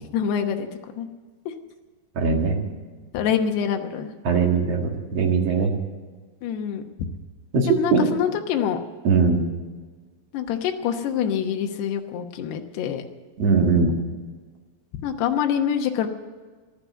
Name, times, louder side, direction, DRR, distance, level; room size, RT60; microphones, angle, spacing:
voice 1, 0.1-0.7 1.0-1.1 1.5-1.6 3.1-4.1 6.4-6.8 7.7-8.8 10.3-13.0 15.0-16.1, left 8 dB, 80° left, 4 dB, 3.1 m, -25 dB
voice 2, 2.1-2.6 4.2-5.7 7.5-8.1 9.0-9.5 13.4-13.9, right 5 dB, 45° right, 1 dB, 2.4 m, -20 dB
15.0 x 12.0 x 8.0 m, 1.4 s
omnidirectional pair, 4.7 m